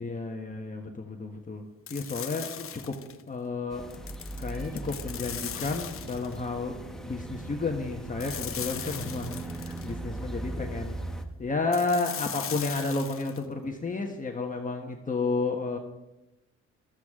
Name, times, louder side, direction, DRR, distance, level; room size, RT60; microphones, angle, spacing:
voice 1, 0.0-1.6 1.9-3.0 3.3-3.8 4.4-6.8 7.0-11.0 11.4-15.8, left 3 dB, 25° left, 2 dB, 1.4 m, -31 dB
sound 1, 1.9-3.2 3.9-6.4 8.2-9.9 11.7-13.4, left 9 dB, 45° left, 0.9 m, -39 dB
sound 2, 3.7-11.3, right 2 dB, ahead, 1.1 m, -39 dB
14.5 x 13.0 x 3.7 m, 0.98 s
cardioid pair, 90°, 30 cm